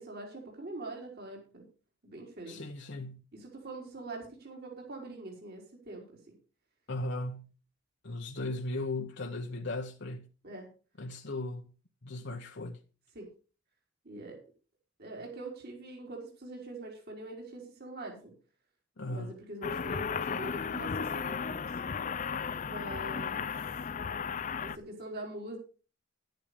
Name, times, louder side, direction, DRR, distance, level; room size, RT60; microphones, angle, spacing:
voice 1, 0.0-1.6 2.0-2.6 3.3-6.3 10.4-10.7 13.1-13.3 14.0-14.4 15.0-18.3 19.0-21.7 22.6-23.5 24.6-25.6, right 2 dB, 50° right, 4.5 m, -44 dB
voice 2, 2.5-3.2 6.9-7.5 8.0-10.3 11.0-11.7 12.0-12.8 19.0-19.4, left 2 dB, 60° left, 1.1 m, -37 dB
sound 1, 19.6-24.8, left 6 dB, 40° left, 0.5 m, -35 dB
11.5 x 10.5 x 5.1 m
head